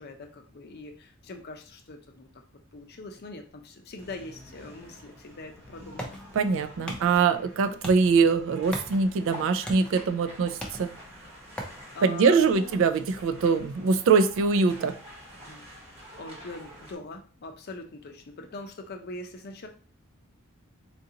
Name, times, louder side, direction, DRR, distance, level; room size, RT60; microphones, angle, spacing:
voice 1, 0.0-2.3 2.7-6.2 9.4-9.5 10.6-10.9 11.5-12.7 15.4-19.7, left 2 dB, 50° left, 4 dB, 0.6 m, -43 dB
sound 1, 4.0-17.0, equal, 30° right, 1.1 m, -48 dB
sound 2, 5.2-16.7, equal, 5° left, 0.5 m, -45 dB
voice 2, 6.3-10.9 12.0-14.9, right 5 dB, 65° right, 9 dB, 0.3 m, -23 dB
3.8 x 2.5 x 2.8 m, 0.39 s
head